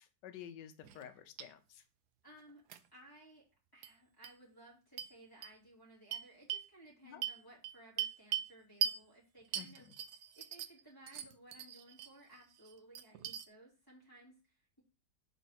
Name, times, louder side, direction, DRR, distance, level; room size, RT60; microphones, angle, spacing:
voice 1, 0.0-1.8 7.0-7.2 9.5-9.8, left 9 dB, 90° left, 10 dB, 1.4 m, -51 dB
sound 1, 0.8-1.1 1.4-1.5 2.7-2.8 3.8-3.9 4.2-4.3 5.0-5.1 5.4-5.5 6.1-6.7 7.2-8.5 8.8-9.0 9.5-10.8 11.1-12.1 12.5-13.5, right 9 dB, 75° right, 1.1 m, -39 dB
voice 2, 2.2-2.6 2.9-3.4 3.7-14.8, right 1 dB, 10° left, -5 dB, 3.2 m, -59 dB
5.2 x 4.3 x 5.8 m, 0.33 s
omnidirectional pair, 1.8 m